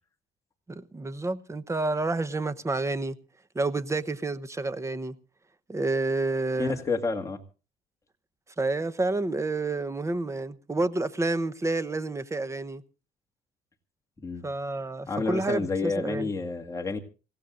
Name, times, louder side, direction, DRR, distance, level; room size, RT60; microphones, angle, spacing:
voice 1, 0.7-3.2 3.5-5.1 5.7-6.8 8.6-12.8 14.4-16.3, right 2 dB, 15° right, 0.9 m, -29 dB
voice 2, 6.6-7.4 14.2-14.4 15.1-17.0, left 4 dB, 20° left, 2.0 m, -29 dB
26.0 x 15.5 x 2.5 m
cardioid pair, 110°, 17 cm